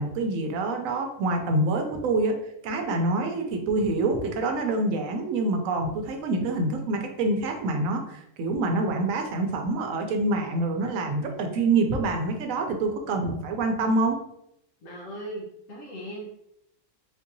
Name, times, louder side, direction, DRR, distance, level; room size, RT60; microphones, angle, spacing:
voice 1, 0.0-2.4 2.6-14.2, right 2 dB, 75° right, 4 dB, 1.0 m, -26 dB
voice 2, 14.8-16.2, right 1 dB, 70° left, -4 dB, 1.2 m, -38 dB
3.7 x 2.7 x 2.6 m, 0.77 s
omnidirectional pair, 1.4 m